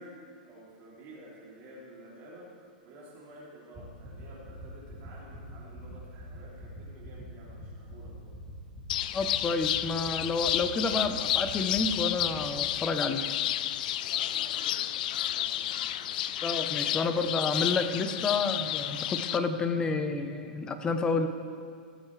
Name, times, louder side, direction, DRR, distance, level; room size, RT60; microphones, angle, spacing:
voice 1, 0.0-8.3 9.4-9.6 14.0-16.3, right 1 dB, 40° right, -6 dB, 3.1 m, -51 dB
sound 1, 3.7-12.6, equal, 25° right, 2.7 m, -44 dB
sound 2, 8.9-19.4, left 12 dB, 65° left, 0.3 m, -31 dB
voice 2, 9.1-13.2 16.4-21.3, left 4 dB, 15° left, 8 dB, 0.8 m, -30 dB
18.0 x 7.1 x 3.3 m, 2.2 s
hypercardioid pair, 130°, 5 cm